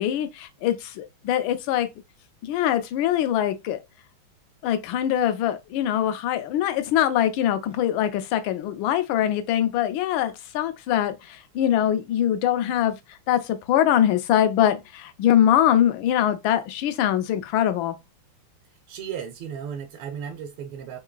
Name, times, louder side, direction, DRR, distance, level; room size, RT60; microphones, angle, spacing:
voice 1, 0.0-1.9 2.4-3.8 4.6-18.0, left 11 dB, 75° left, 1.2 m, -23 dB
voice 2, 18.7-21.0, right 8 dB, 80° right, 1.5 m, -35 dB
3.8 x 3.2 x 2.2 m
omnidirectional pair, 2.4 m